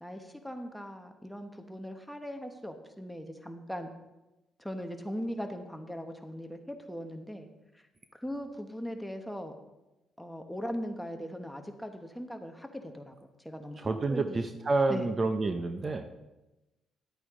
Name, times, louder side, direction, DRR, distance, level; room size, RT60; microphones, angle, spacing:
voice 1, 0.0-3.9 4.6-7.5 7.7-7.8 8.1-9.5 10.2-13.2 13.4-14.4 14.9-15.1, equal, ahead, 5 dB, 1.1 m, -39 dB
voice 2, 13.8-16.1, right 3 dB, 35° right, 8 dB, 0.7 m, -29 dB
11.5 x 8.7 x 3.7 m, 1.0 s
cardioid pair, 90°, 0 cm